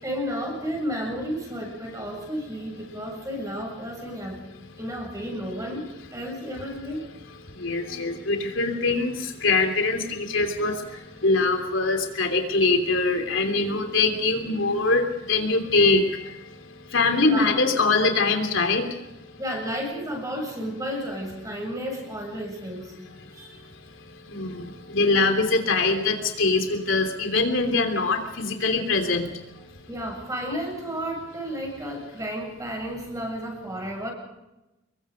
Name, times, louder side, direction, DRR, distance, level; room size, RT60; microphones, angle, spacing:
voice 1, 0.0-4.5 4.8-7.1 17.2-17.6 19.4-23.0 23.3-23.7 29.9-34.1, equal, 15° right, 1 dB, 7.6 m, -32 dB
voice 2, 7.5-16.5 16.9-18.9 24.3-29.3, left 3 dB, 70° left, 5 dB, 3.2 m, -23 dB
27.5 x 22.5 x 5.2 m, 0.97 s
head